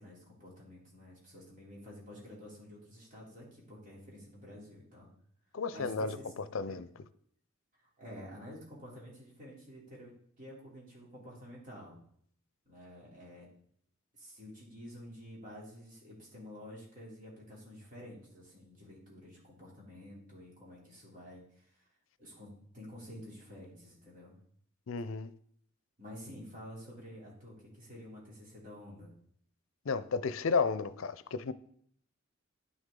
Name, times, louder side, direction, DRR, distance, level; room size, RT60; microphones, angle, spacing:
voice 1, 0.0-5.1 5.7-6.9 7.8-12.0 12.6-13.5 14.1-21.9 22.2-22.5 22.7-24.4 26.0-29.1, equal, 40° right, 3.3 m, -50 dB
voice 2, 5.5-6.2 6.5-6.9 24.9-25.3 29.9-31.5, left 4 dB, 80° left, 0.5 m, -32 dB
10.5 x 6.4 x 3.8 m
head